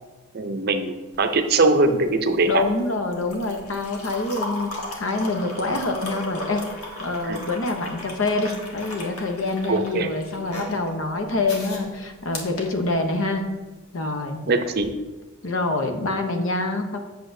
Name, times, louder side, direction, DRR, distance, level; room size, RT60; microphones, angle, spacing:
voice 1, 0.3-2.7 7.2-7.4 9.7-10.1 14.5-14.9, right 3 dB, 45° right, 7 dB, 0.5 m, -21 dB
sound 1, 1.1-13.4 14.7-14.9, left 1 dB, 80° left, 1.3 m, -37 dB
voice 2, 2.5-4.7 5.0-6.6 7.0-13.4 13.9-14.5 15.4-17.0, left 2 dB, 60° left, 5 dB, 0.8 m, -26 dB
8.2 x 6.6 x 2.6 m, 1.2 s
head